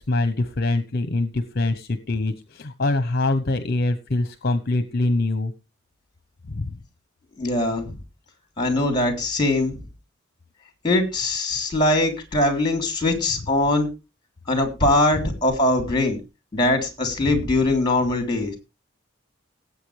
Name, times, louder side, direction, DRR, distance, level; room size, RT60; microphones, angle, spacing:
voice 1, 0.0-5.5 6.5-6.7, left 2 dB, 50° left, 11 dB, 0.9 m, -24 dB
voice 2, 7.4-7.9 8.6-9.8 10.8-13.9 14.5-16.2 16.5-18.6, left 2 dB, 25° left, 5 dB, 3.5 m, -21 dB
19.0 x 8.3 x 3.4 m, 0.28 s
head